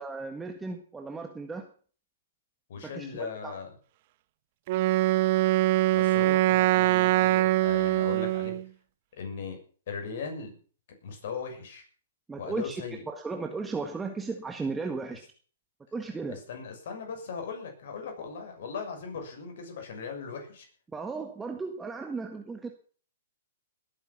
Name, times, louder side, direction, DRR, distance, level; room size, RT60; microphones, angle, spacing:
voice 1, 0.0-1.7 2.8-3.6 12.3-15.2 15.9-16.4 20.9-22.7, right 4 dB, 10° right, 4 dB, 1.7 m, -35 dB
voice 2, 2.7-3.7 5.9-8.6 9.2-9.6 9.9-10.6 11.0-11.8 12.4-13.0 16.3-20.6, left 5 dB, 55° left, 4 dB, 6.7 m, -38 dB
Wind instrument woodwind instrument, 4.7-8.7, right 16 dB, 45° right, 0.6 m, -23 dB
20.0 x 9.6 x 6.2 m, 0.43 s
hypercardioid pair, 120°, 0 cm